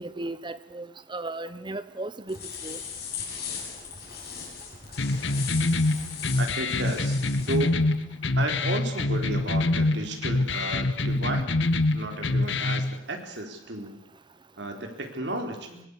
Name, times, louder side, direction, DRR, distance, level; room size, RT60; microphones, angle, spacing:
voice 1, 0.0-2.4 2.6-2.8, right 2 dB, 25° right, 14 dB, 1.0 m, -35 dB
sound 1, 2.3-7.6, left 6 dB, 55° left, 7.2 m, -38 dB
sound 2, 5.0-12.9, left 2 dB, 75° left, 1.3 m, -25 dB
voice 2, 6.4-7.9 8.4-11.5 11.9-14.0 14.6-15.8, right 1 dB, 65° right, 4 dB, 4.3 m, -33 dB
24.5 x 19.5 x 8.4 m, 0.81 s
head